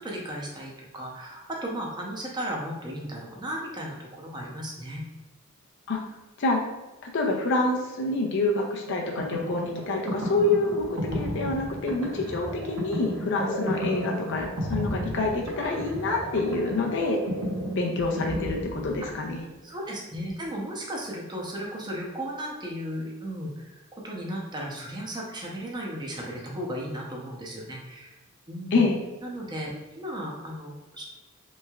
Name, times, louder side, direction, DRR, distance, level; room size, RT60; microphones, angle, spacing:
voice 1, 0.0-5.0 19.0-19.1 19.6-23.8 24.0-28.2 28.5-28.8 29.2-31.0, equal, 20° right, -2 dB, 0.6 m, -35 dB
voice 2, 7.0-17.2 17.8-19.4 28.7-29.0, left 2 dB, 60° left, 0 dB, 0.5 m, -27 dB
sound 1, 8.9-19.4, equal, 90° right, 0.8 m, -33 dB
3.3 x 3.1 x 2.3 m, 1.1 s
head